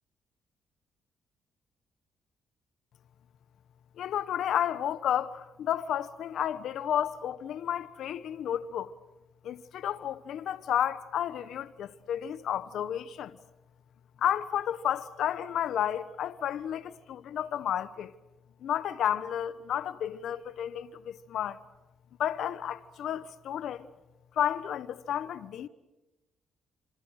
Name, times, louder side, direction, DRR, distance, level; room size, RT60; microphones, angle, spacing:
voice 1, 4.0-8.9 9.4-13.4 14.2-18.1 18.6-21.6 22.2-23.9 24.4-25.7, left 10 dB, 75° left, 1.1 m, -32 dB
27.0 x 26.5 x 6.6 m
cardioid pair, 90°, 0 cm